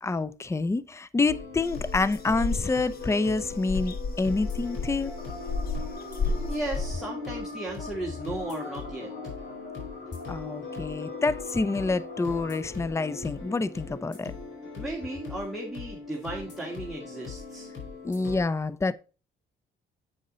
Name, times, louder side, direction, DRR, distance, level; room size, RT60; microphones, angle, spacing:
voice 1, 0.0-5.1 10.3-14.3 18.0-18.9, left 3 dB, 15° left, 0.5 m, -27 dB
sound 1, 1.3-18.4, left 4 dB, 65° left, 3.9 m, -40 dB
sound 2, 1.6-6.9, left 4 dB, 50° left, 1.2 m, -32 dB
sound 3, 5.2-12.6, left 3 dB, 35° left, 3.0 m, -42 dB
voice 2, 5.9-9.1 14.7-17.7, right 2 dB, ahead, 2.1 m, -36 dB
8.7 x 5.3 x 3.9 m
cardioid pair, 90°, 20 cm